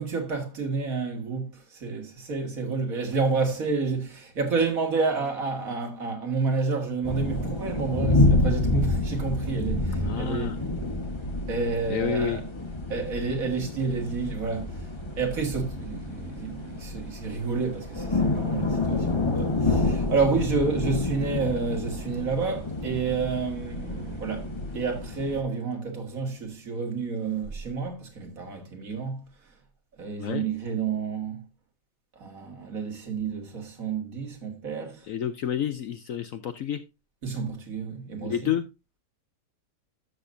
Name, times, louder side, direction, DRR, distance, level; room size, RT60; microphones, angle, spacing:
voice 1, 0.0-10.6 11.5-12.5 12.9-29.2 30.0-31.5 32.2-35.1 37.2-38.5, right 4 dB, 55° right, 2.2 m, -29 dB
sound 1, 7.0-25.4, left 2 dB, 20° left, 1.1 m, -28 dB
voice 2, 10.0-10.6 11.9-12.4 30.2-30.4 35.1-36.8 38.3-38.6, left 9 dB, 65° left, 0.9 m, -29 dB
12.5 x 6.7 x 2.6 m
omnidirectional pair, 1.8 m